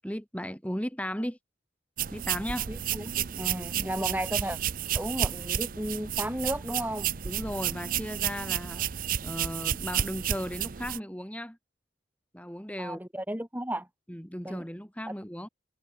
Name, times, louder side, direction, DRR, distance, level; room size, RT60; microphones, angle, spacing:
voice 1, 0.0-1.4 2.1-2.7 7.3-8.9 9.2-11.6 12.3-13.0 14.1-15.5, equal, 5° left, 7.1 m, -36 dB
sound 1, 2.0-11.0, right 10 dB, 45° right, 0.6 m, -31 dB
voice 2, 2.7-4.6 4.9-7.1 12.8-13.9 14.4-14.6, right 1 dB, 10° right, 3.2 m, -34 dB
head